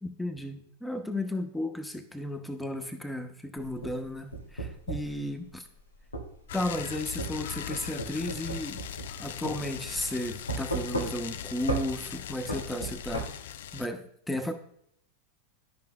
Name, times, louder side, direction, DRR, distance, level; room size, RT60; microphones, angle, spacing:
voice 1, 0.0-5.7 6.5-8.8 9.2-13.3 13.7-14.5, left 1 dB, 5° left, 7 dB, 0.9 m, -34 dB
sound 1, 3.7-5.2 6.1-6.3 7.2-9.2 9.4-9.6 10.5-11.4 11.7-11.9 12.5-13.3, right 2 dB, 80° left, 1.4 m, -34 dB
sound 2, 6.5-13.9, left 10 dB, 55° left, 0.4 m, -40 dB
12.5 x 5.6 x 2.3 m, 0.69 s
figure-of-eight pair, 90°, 0 cm